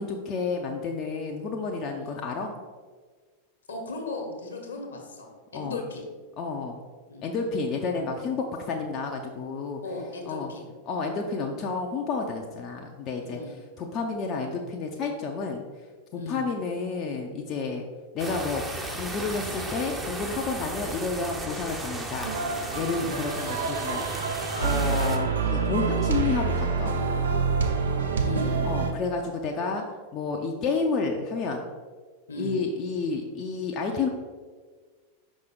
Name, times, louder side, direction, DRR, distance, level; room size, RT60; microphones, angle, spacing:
voice 1, 0.0-2.5 5.5-5.8 6.4-6.8 7.2-9.8 10.3-10.5 10.9-15.6 16.1-17.8 18.1-18.6 19.0-27.1 28.6-29.8 30.1-31.7 32.4-34.1, left 4 dB, 35° left, 1 dB, 0.6 m, -30 dB
voice 2, 3.7-6.1 7.1-7.3 9.8-10.7 13.2-13.6 16.1-16.4 22.9-23.2 28.2-28.6 32.3-32.6, left 3 dB, 70° left, 2 dB, 1.2 m, -36 dB
sound 1, 18.2-25.2, right 2 dB, 10° right, 0.8 m, -35 dB
sound 2, 22.2-28.9, right 5 dB, 65° right, 0.7 m, -27 dB
5.6 x 5.0 x 3.8 m, 1.5 s
figure-of-eight pair, 90°, 0 cm